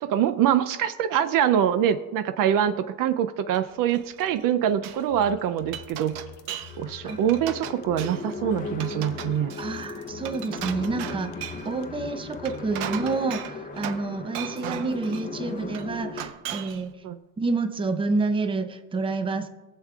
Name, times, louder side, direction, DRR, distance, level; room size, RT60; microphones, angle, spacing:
voice 1, 0.0-6.2 6.8-9.5 17.0-17.2, right 9 dB, 55° right, 10 dB, 0.5 m, -24 dB
Glass, 3.5-4.4 4.7-5.0 5.5-6.8 7.1-8.3 8.7-11.7 12.3-14.1 14.3-15.3 15.7-16.9, right 10 dB, 70° right, 0.9 m, -37 dB
sound 1, 5.1-13.1, left 7 dB, 85° left, 0.8 m, -46 dB
sound 2, 5.5-5.6 6.7-16.3, left 4 dB, 20° left, 0.7 m, -37 dB
voice 2, 9.6-11.3 11.6-16.9 17.4-19.5, right 3 dB, 15° right, 8 dB, 0.6 m, -28 dB
21.0 x 7.4 x 2.4 m, 1.2 s
cardioid pair, 115°, 40 cm